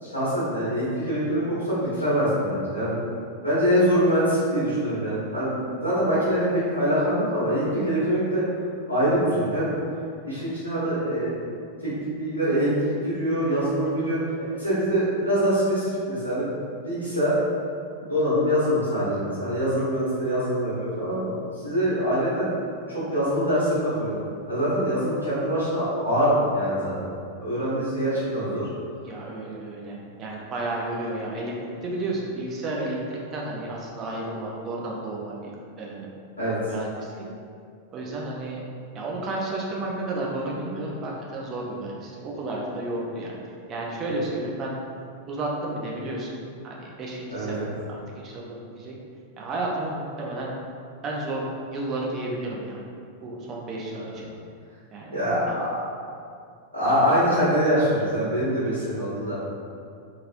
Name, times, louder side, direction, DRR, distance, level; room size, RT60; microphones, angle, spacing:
voice 1, 0.0-3.0 3.4-8.4 8.9-9.7 10.2-11.4 11.8-14.2 14.6-16.5 16.8-17.3 18.0-24.2 24.5-27.1 27.4-28.7 36.4-36.6 47.3-47.7 53.9-54.2 55.1-55.8 56.7-59.3, equal, 85° left, -12 dB, 1.2 m, -24 dB
voice 2, 29.0-35.5 35.8-36.1 36.7-37.2 37.9-38.6 38.9-43.3 43.7-44.8 45.3-46.4 46.7-48.9 49.4-50.5 51.0-52.8 53.2-54.3 54.9-55.2 55.5-55.6, right 2 dB, 30° right, -3 dB, 0.6 m, -32 dB
3.0 x 2.8 x 2.6 m, 2.3 s
figure-of-eight pair, 90°, 0 cm